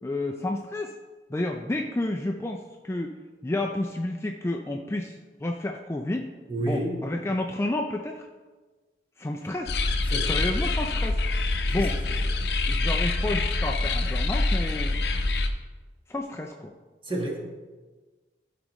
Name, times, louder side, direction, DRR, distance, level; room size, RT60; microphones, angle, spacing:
voice 1, 0.0-0.9 1.3-3.1 3.4-6.3 6.6-8.3 9.2-9.8 10.2-11.2 11.7-12.0 12.7-15.0 16.1-16.7, left 1 dB, 15° left, 2 dB, 0.4 m, -30 dB
voice 2, 6.5-7.0 10.1-10.4 17.1-17.4, right 1 dB, 30° right, -1 dB, 1.5 m, -29 dB
sound 1, 9.7-15.5, left 2 dB, 70° left, 0.7 m, -25 dB
13.0 x 5.1 x 3.1 m, 1.3 s
head